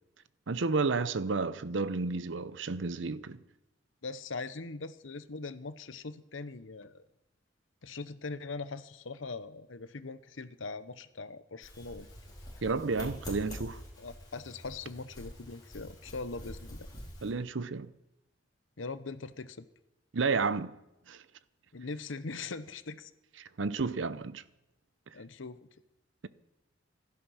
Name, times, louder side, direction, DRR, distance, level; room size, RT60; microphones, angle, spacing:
voice 1, 0.5-3.4 12.6-13.8 17.2-17.9 20.1-20.8 21.1-21.2 23.4-24.4, right 4 dB, 80° right, 0.7 m, -31 dB
voice 2, 4.0-7.0 7.8-12.1 14.0-16.9 18.8-19.7 21.7-23.1 25.1-25.7, left 3 dB, 90° left, 0.9 m, -41 dB
sound 1, 11.6-17.3, equal, 20° left, 4.9 m, -46 dB
16.0 x 13.5 x 5.6 m
head